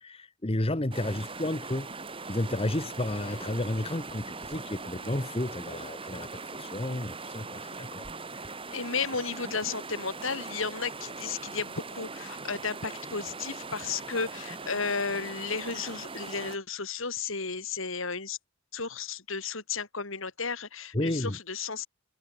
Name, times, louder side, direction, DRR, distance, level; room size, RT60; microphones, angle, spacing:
voice 1, 0.0-1.9 2.3-8.5 20.9-21.4, left 1 dB, 25° left, 1.3 m, -32 dB
sound 1, 0.9-16.6, right 3 dB, 25° right, 3.0 m, -41 dB
voice 2, 8.7-18.4 18.7-21.9, left 5 dB, 70° left, 3.5 m, -33 dB
head